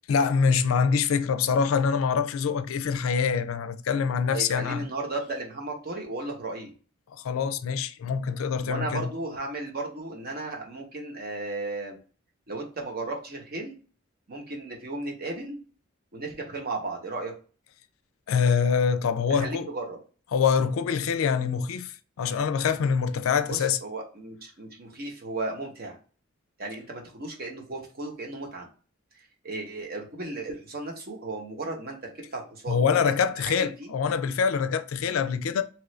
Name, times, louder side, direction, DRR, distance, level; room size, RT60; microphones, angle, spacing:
voice 1, 0.1-4.9 7.2-9.1 18.3-19.7 20.3-23.8 32.7-35.6, left 6 dB, 85° left, 0.4 m, -25 dB
voice 2, 4.3-6.7 8.6-12.0 12.5-13.8 14.3-15.6 16.1-17.3 19.3-20.0 23.5-26.0 26.6-28.7 29.4-33.0 33.4-34.0, right 2 dB, 50° right, 0.9 m, -35 dB
3.0 x 2.4 x 3.1 m
head